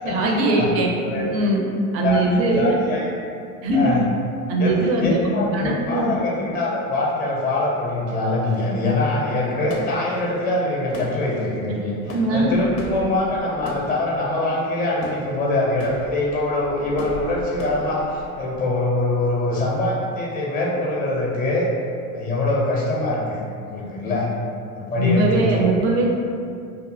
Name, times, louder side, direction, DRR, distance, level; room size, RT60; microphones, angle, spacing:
voice 1, 0.0-1.6 1.9-2.8 3.6-3.9 4.5-6.2 12.1-12.5 25.0-26.1, right 2 dB, 30° right, 0 dB, 0.4 m, -21 dB
voice 2, 1.0-1.4 2.0-3.1 3.7-4.0 4.6-21.7 22.1-23.4 23.7-24.3 24.7-25.7, left 2 dB, 20° left, -4 dB, 0.5 m, -23 dB
sound 1, 8.5-18.6, left 1 dB, 85° left, 0.6 m, -38 dB
2.6 x 2.5 x 2.5 m, 2.4 s
hypercardioid pair, 85°, 47 cm